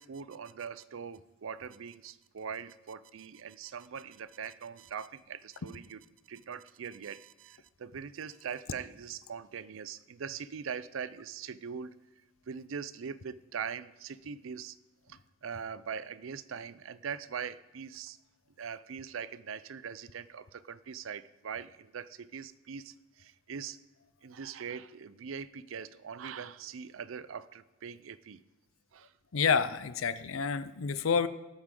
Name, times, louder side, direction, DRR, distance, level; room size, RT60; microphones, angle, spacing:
voice 1, 0.0-11.9 12.5-14.8 15.1-18.2 18.6-23.8 24.2-28.4 28.9-29.1, right 6 dB, 75° right, 16 dB, 0.5 m, -42 dB
voice 2, 29.3-31.3, left 6 dB, 85° left, 14 dB, 0.6 m, -28 dB
18.5 x 8.4 x 3.8 m, 1.1 s
head